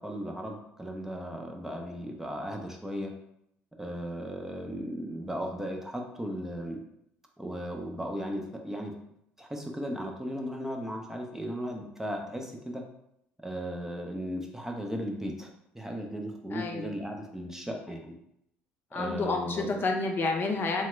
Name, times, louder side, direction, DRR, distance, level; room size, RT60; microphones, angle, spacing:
voice 1, 0.0-3.1 3.8-6.8 7.4-8.9 9.4-12.8 13.4-15.5 15.7-18.1 18.9-19.8, equal, 5° right, 2 dB, 0.6 m, -36 dB
voice 2, 16.5-16.9 18.9-20.9, left 3 dB, 40° left, 3 dB, 0.5 m, -29 dB
2.8 x 2.2 x 3.1 m, 0.78 s
hypercardioid pair, 65°, 6 cm